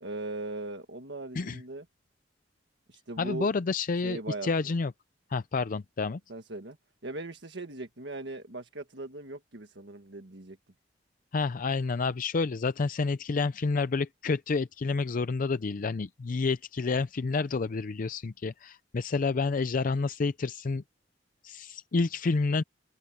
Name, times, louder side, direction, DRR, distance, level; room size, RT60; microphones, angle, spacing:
voice 1, 0.0-1.9 2.9-3.5 4.0-4.7 6.3-6.8 7.0-10.6, right 2 dB, 70° right, 1.7 m, -39 dB
voice 2, 3.2-4.9 5.3-6.2 11.3-20.8 21.4-22.6, left 4 dB, 50° left, 0.5 m, -29 dB
open air
head